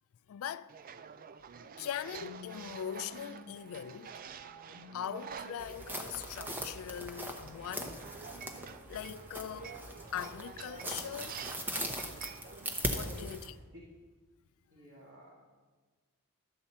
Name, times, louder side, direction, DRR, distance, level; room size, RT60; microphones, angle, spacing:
voice 1, 0.3-0.7 1.8-4.1 4.9-8.1 8.9-9.8 10.1-11.4 12.9-13.4, left 9 dB, 65° left, 0.3 m, -41 dB
sound 1, 0.7-13.4, right 7 dB, 40° right, 0.4 m, -49 dB
sound 2, 1.5-13.2, equal, 80° right, 1.0 m, -56 dB
sound 3, 5.6-13.5, equal, 10° right, 0.8 m, -40 dB
voice 2, 12.7-13.9 14.7-15.3, right 1 dB, 60° right, 1.8 m, -53 dB
12.5 x 7.3 x 4.2 m
head